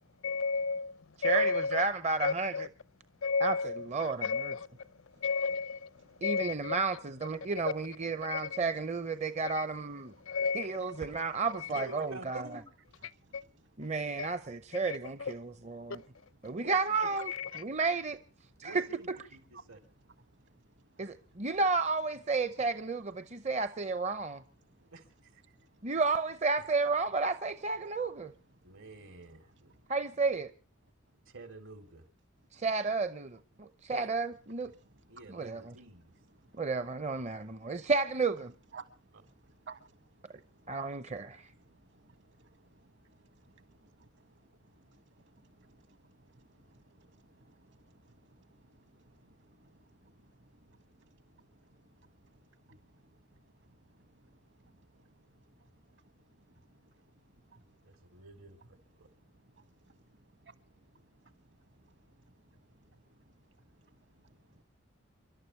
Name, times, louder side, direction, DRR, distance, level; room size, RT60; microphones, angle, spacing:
voice 1, 0.2-0.9 1.2-1.8 2.2-2.7 3.2-4.7 5.2-5.9 6.2-6.8 8.3-8.6 9.4-9.6 10.3-11.0 11.6-11.8 13.3-13.4 14.2-14.3 14.9-15.3 17.3-17.6, left 5 dB, 80° left, 0.7 m, -32 dB
voice 2, 1.2-2.7 3.4-4.5 6.2-10.1 10.5-12.4 13.8-16.0 16.4-18.2 18.6-19.2 21.0-24.4 25.8-28.3 29.9-30.5 32.5-34.7 35.3-35.7 36.6-38.5 40.7-41.4, right 4 dB, 35° right, 0.7 m, -32 dB
voice 3, 11.7-12.7 16.6-17.1 18.6-19.8 24.8-25.4 28.6-29.7 31.3-32.0 33.9-34.1 35.1-36.1 57.8-58.6 59.0-59.1, right 3 dB, 80° right, 3.4 m, -49 dB
voice 4, 13.2-13.9 20.4-20.6 20.9-21.3 25.5-25.8 29.7-29.8 34.8-35.1 36.5-36.6 37.6-37.7 38.7-40.8 41.3-57.2 57.5-57.8 59.3-60.6 61.2-61.3 61.7-62.4 62.8-63.3 64.2-64.6, right 4 dB, 60° right, 1.7 m, -60 dB
30.0 x 12.5 x 3.2 m
head